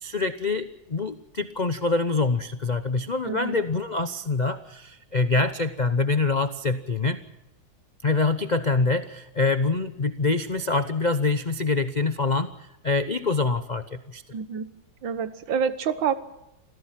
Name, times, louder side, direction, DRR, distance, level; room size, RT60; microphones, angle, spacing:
voice 1, 0.0-7.2 8.0-12.5 12.8-14.2, left 3 dB, 60° left, 11 dB, 0.4 m, -25 dB
voice 2, 3.2-3.6 14.3-14.7 15.0-16.1, right 7 dB, 70° right, 13 dB, 1.9 m, -27 dB
26.5 x 16.0 x 7.5 m, 0.89 s
omnidirectional pair, 2.2 m